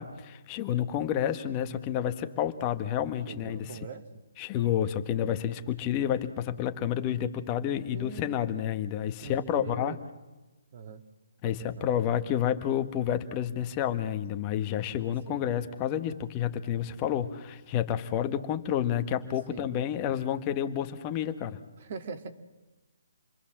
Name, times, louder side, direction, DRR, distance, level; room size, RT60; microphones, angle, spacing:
voice 1, 0.0-3.8 4.4-10.0 11.4-21.6, left 10 dB, 25° left, 8 dB, 1.4 m, -30 dB
voice 2, 3.3-4.1 7.9-8.4 9.2-10.0 10.7-11.0 11.4-12.1 15.3-15.5 19.5-19.8 21.8-22.3, right 6 dB, 45° right, 8 dB, 2.2 m, -42 dB
27.5 x 22.0 x 7.5 m, 1.1 s
hypercardioid pair, 160°, 0 cm